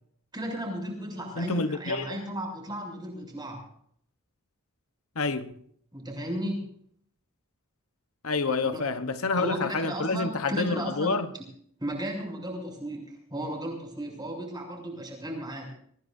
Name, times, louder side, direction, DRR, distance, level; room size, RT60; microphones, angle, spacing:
voice 1, 0.3-3.6 5.9-6.6 8.6-8.8 9.4-11.4 11.8-15.7, equal, 20° right, 6.8 m, -34 dB
voice 2, 1.4-2.2 5.2-5.5 8.2-11.3, left 3 dB, 70° left, 1.0 m, -28 dB
25.0 x 18.0 x 2.7 m
head